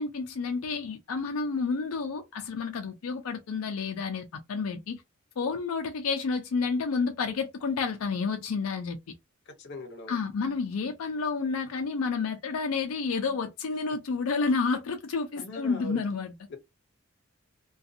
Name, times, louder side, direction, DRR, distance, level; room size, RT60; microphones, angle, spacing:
voice 1, 0.0-5.0 5.4-9.0 10.1-16.3, left 4 dB, 85° left, 0.4 m, -30 dB
voice 2, 9.6-10.2 15.4-16.0 16.5-16.6, left 1 dB, 55° left, 0.7 m, -40 dB
2.4 x 2.2 x 2.6 m
head